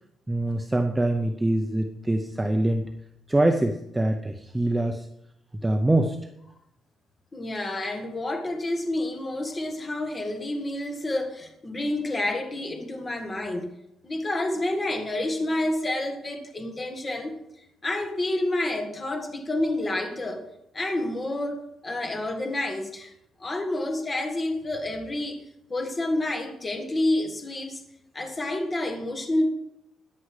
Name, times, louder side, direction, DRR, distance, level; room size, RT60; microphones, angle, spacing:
voice 1, 0.3-2.9 3.3-5.1 5.5-6.2, right 1 dB, 10° right, 5 dB, 0.7 m, -24 dB
voice 2, 7.3-13.7 14.0-17.3 17.8-20.4 20.7-23.1 23.4-25.4 25.7-27.8 28.1-29.5, left 1 dB, 20° left, 4 dB, 1.8 m, -29 dB
14.0 x 10.0 x 5.0 m, 0.79 s
cardioid pair, 175°, 0 cm